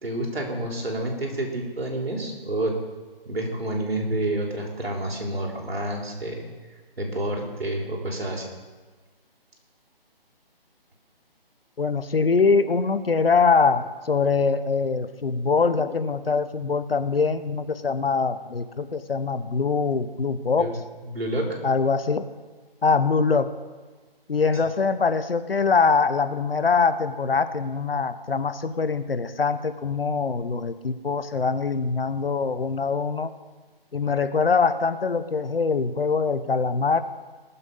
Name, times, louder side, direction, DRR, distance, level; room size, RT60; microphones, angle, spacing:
voice 1, 0.0-2.8 3.3-6.4 7.0-8.5 20.6-20.7 21.0-21.5, right 1 dB, 80° right, 0 dB, 3.9 m, -29 dB
voice 2, 11.8-20.7 21.6-22.3 22.8-23.5 24.3-33.3 33.9-37.0, left 4 dB, 70° left, 12 dB, 1.1 m, -23 dB
20.0 x 7.1 x 5.5 m, 1.4 s
hypercardioid pair, 175°, 30 cm